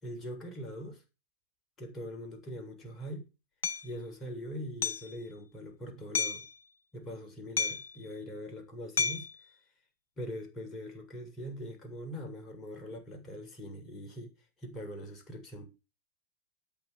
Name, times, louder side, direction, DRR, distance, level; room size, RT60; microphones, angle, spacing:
voice 1, 0.0-1.0 1.8-3.2 3.8-6.4 6.9-9.5 10.2-14.3 14.6-15.7, equal, 25° left, 7.2 m, -42 dB
Hammer, 3.6-3.8 4.8-5.1 6.1-6.5 7.6-8.0 9.0-9.4, left 5 dB, 65° left, 0.8 m, -31 dB
13.0 x 9.1 x 6.9 m
figure-of-eight pair, 90°, 0 cm